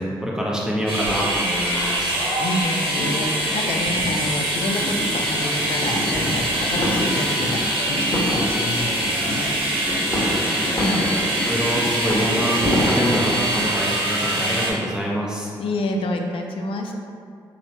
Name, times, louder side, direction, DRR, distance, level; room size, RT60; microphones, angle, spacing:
voice 1, 0.0-2.2 10.1-10.8 11.4-15.5, equal, 5° right, -4 dB, 0.7 m, -26 dB
sound 1, 0.9-14.7, right 1 dB, 60° right, 0.8 m, -24 dB
voice 2, 2.1-9.5 10.8-11.1 15.6-16.9, left 1 dB, 65° left, 3 dB, 0.3 m, -28 dB
sound 2, 2.5-13.9, equal, 25° left, 1.1 m, -28 dB
3.1 x 2.0 x 2.8 m, 2.3 s
hypercardioid pair, 45°, 10 cm